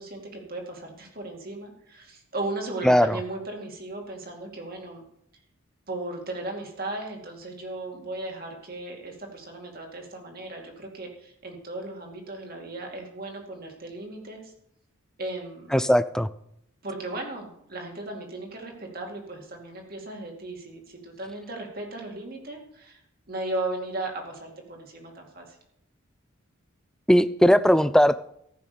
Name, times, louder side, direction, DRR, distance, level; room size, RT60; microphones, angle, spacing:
voice 1, 0.0-5.0 5.9-14.5 15.2-15.8 16.8-23.0 23.3-25.6, right 2 dB, 45° right, 2 dB, 2.5 m, -36 dB
voice 2, 2.8-3.2 15.7-16.3 27.1-28.2, equal, 5° left, 13 dB, 0.3 m, -19 dB
14.5 x 6.2 x 6.9 m, 0.73 s
head